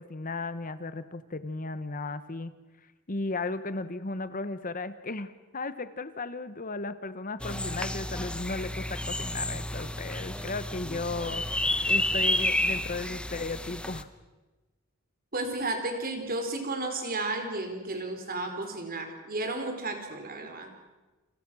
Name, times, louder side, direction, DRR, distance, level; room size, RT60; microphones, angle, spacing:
voice 1, 0.0-2.5 3.1-11.4 11.9-14.1, left 3 dB, 40° left, 13 dB, 1.0 m, -35 dB
sound 1, 7.4-14.0, left 1 dB, 5° left, 1.0 m, -30 dB
voice 2, 15.3-20.7, right 2 dB, 40° right, 6 dB, 4.4 m, -33 dB
29.5 x 28.0 x 6.2 m, 1.2 s
head